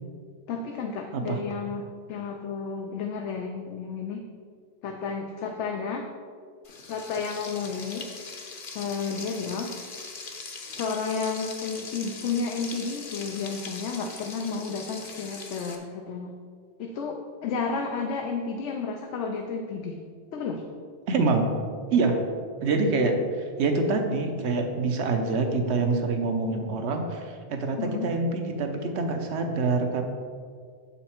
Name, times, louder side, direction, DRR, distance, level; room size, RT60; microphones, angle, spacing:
voice 1, 0.5-4.2 4.8-6.1 6.9-8.1 8.7-9.8 10.7-16.4 16.8-20.0 20.3-20.6 27.8-28.1, left 5 dB, 85° left, 3 dB, 0.9 m, -32 dB
Frying (food), 6.6-15.8, left 4 dB, 55° left, 1.0 m, -41 dB
voice 2, 21.1-21.5 21.9-22.2 22.6-30.0, right 3 dB, 75° right, 5 dB, 1.1 m, -26 dB
7.2 x 5.6 x 4.4 m, 2.1 s
omnidirectional pair, 1.2 m